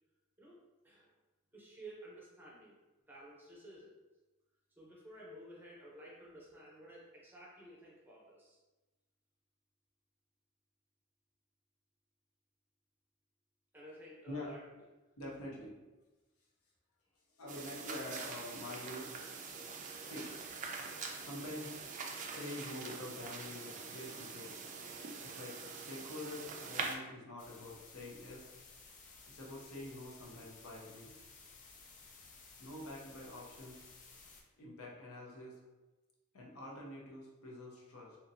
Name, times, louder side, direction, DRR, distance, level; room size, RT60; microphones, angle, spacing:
voice 1, 0.4-1.1 1.5-2.8 3.1-3.9 4.8-8.6 13.7-14.6, right 1 dB, 10° right, -5 dB, 0.7 m, -53 dB
voice 2, 15.2-15.7 17.4-19.1 20.0-20.3 21.2-24.6 25.2-28.5 29.3-31.1 32.6-33.9 34.6-35.6 36.3-38.2, left 1 dB, 80° left, -3 dB, 0.7 m, -47 dB
sound 1, 17.5-27.0, right 4 dB, 35° right, 0.3 m, -44 dB
TV-Static-Sound, 27.4-34.4, left 4 dB, 35° left, 0.4 m, -57 dB
2.9 x 2.6 x 2.6 m, 1.1 s
head